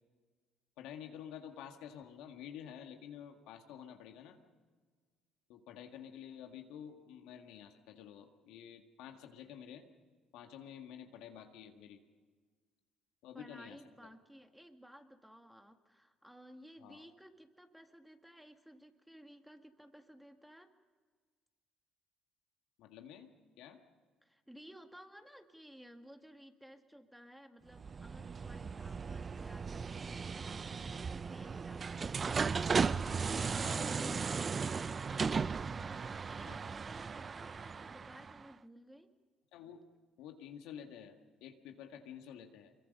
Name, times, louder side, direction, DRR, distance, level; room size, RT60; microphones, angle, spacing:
voice 1, 0.8-4.4 5.5-9.9 10.3-12.0 13.2-14.1 16.8-17.0 22.8-23.3 23.6-23.8 33.1-33.4 33.6-34.1 36.5-36.7 39.5-39.8 40.2-42.7, left 9 dB, 80° left, 5 dB, 1.8 m, -50 dB
voice 2, 13.3-20.7 24.2-39.1, equal, 5° right, 6 dB, 2.0 m, -56 dB
sound 1, 27.7-38.5, right 5 dB, 40° right, 0.5 m, -36 dB
25.0 x 22.5 x 5.4 m, 1.5 s
supercardioid pair, 65°, 0 cm